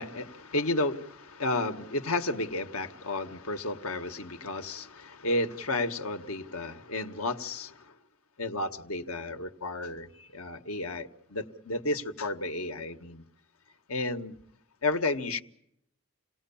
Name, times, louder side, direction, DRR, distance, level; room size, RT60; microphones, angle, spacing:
voice 1, 0.0-7.9 8.4-13.2 13.9-14.4 14.8-15.4, left 2 dB, 85° left, 7 dB, 1.6 m, -32 dB
28.5 x 18.5 x 7.2 m, 0.74 s
head